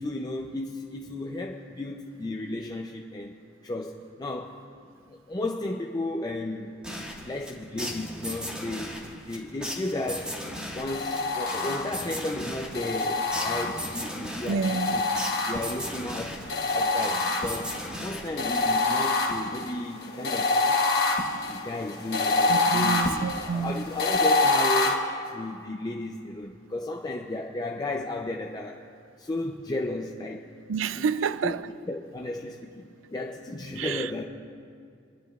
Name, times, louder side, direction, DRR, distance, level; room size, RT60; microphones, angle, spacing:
voice 1, 0.0-3.4 3.6-4.6 5.1-6.7 7.2-10.4 10.7-15.0 15.5-16.4 16.7-21.0 21.5-23.2 23.5-25.0 25.3-28.8 29.2-30.5 31.0-31.1 31.4-31.5 31.9-34.2, left 2 dB, 20° left, 0.4 m, -34 dB
sound 1, 6.8-19.0, equal, 5° right, 1.5 m, -38 dB
sound 2, 10.9-12.1 12.7-14.1 14.6-16.0 16.5-17.8 18.4-24.9, left 3 dB, 55° left, 1.1 m, -26 dB
voice 2, 14.5-15.0 22.5-23.9 30.7-31.7 33.8-34.1, right 5 dB, 75° right, 0.4 m, -29 dB
30.0 x 11.0 x 2.4 m
head